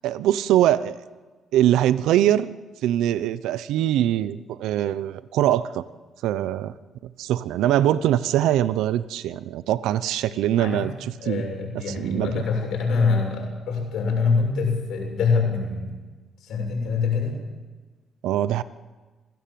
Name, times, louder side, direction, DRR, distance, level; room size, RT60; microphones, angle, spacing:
voice 1, 0.0-1.0 1.5-2.5 2.8-5.8 6.2-6.7 7.2-11.5 11.9-12.3 18.2-18.6, right 12 dB, 90° right, 15 dB, 0.7 m, -22 dB
voice 2, 11.2-15.9 16.4-17.4, left 4 dB, 80° left, 1 dB, 7.2 m, -24 dB
26.0 x 16.5 x 7.7 m, 1.3 s
cardioid pair, 90°, 0 cm